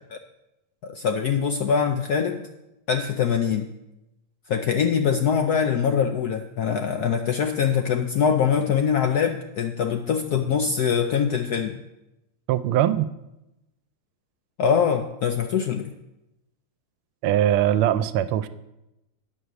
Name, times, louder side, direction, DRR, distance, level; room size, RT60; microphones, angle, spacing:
voice 1, 0.8-2.4 2.9-3.7 4.5-11.8 14.6-15.9, left 7 dB, 75° left, 6 dB, 0.8 m, -23 dB
voice 2, 12.5-13.1 17.2-18.5, right 11 dB, 80° right, 13 dB, 1.4 m, -21 dB
9.2 x 6.4 x 6.9 m, 0.93 s
omnidirectional pair, 2.3 m